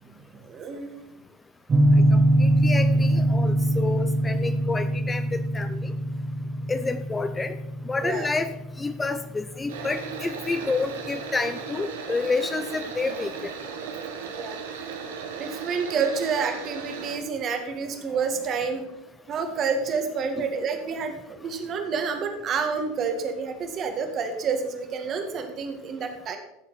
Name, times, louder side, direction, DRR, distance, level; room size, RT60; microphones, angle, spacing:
voice 1, 0.0-1.0 8.0-8.3 14.3-18.9 19.3-26.4, right 5 dB, 40° right, 5 dB, 2.0 m, -29 dB
sound 1, 1.7-10.4, right 1 dB, 20° right, 1.5 m, -23 dB
voice 2, 2.1-5.9 6.7-7.6 7.9-8.5 8.8-13.5, left 3 dB, 15° left, 10 dB, 0.6 m, -29 dB
sound 2, 9.7-17.2, right 6 dB, 70° right, 1.5 m, -36 dB
15.0 x 7.1 x 4.2 m, 0.91 s
figure-of-eight pair, 75°, 0 cm